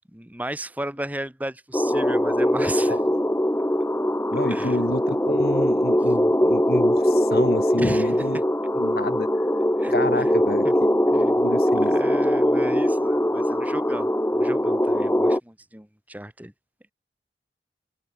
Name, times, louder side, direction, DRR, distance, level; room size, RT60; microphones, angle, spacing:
voice 1, 0.1-3.0 4.5-4.8 7.8-8.1 9.8-9.9 10.2-10.3 11.1-11.4 11.8-16.5, right 1 dB, 10° right, 1.8 m, -34 dB
sound 1, 1.7-15.4, equal, 10° left, 0.9 m, -21 dB
voice 2, 4.3-8.4 8.7-9.3 9.9-10.9 11.4-11.9, left 1 dB, 60° left, 7.0 m, -29 dB
head